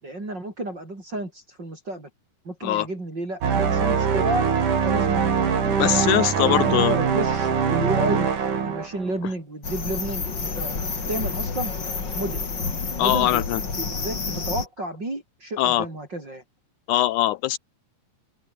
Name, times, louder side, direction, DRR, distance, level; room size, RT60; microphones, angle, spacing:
voice 1, 0.0-2.1 2.5-4.5 4.8-8.3 8.6-11.7 12.1-12.4 13.0-13.4 13.8-16.4, right 2 dB, 30° right, 7.2 m, -32 dB
sound 1, 3.4-9.2, right 6 dB, 65° right, 5.0 m, -22 dB
voice 2, 5.7-7.0 13.0-13.6 15.6-15.9 16.9-17.6, left 14 dB, 80° left, 1.8 m, -22 dB
sound 2, 9.6-14.7, left 4 dB, 35° left, 3.7 m, -29 dB
open air
omnidirectional pair, 3.9 m